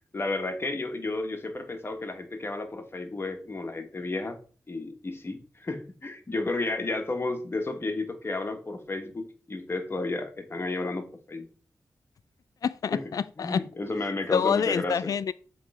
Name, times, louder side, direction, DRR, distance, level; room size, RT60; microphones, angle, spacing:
voice 1, 0.1-4.4 4.7-11.5 12.9-13.0 13.4-15.1, left 2 dB, 40° left, 1.2 m, -32 dB
voice 2, 12.6-13.6 14.3-15.3, left 7 dB, 75° left, 0.3 m, -27 dB
7.4 x 3.2 x 4.8 m
cardioid pair, 70°, 6 cm